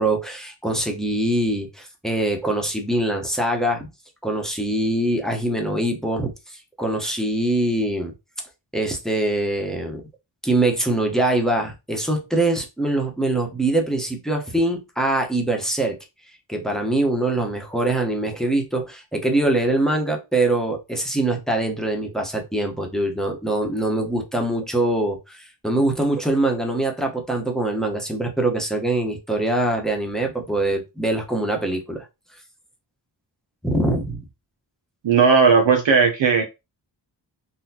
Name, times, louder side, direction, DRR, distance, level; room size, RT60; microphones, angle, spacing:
voice 1, 0.0-3.9 4.2-8.1 8.7-10.0 10.4-16.0 16.5-32.0 33.6-34.2, right 1 dB, ahead, 1.0 m, -23 dB
voice 2, 35.0-36.4, right 5 dB, 75° right, 0.7 m, -16 dB
4.1 x 2.2 x 2.8 m
wide cardioid pair, 60°, 45 cm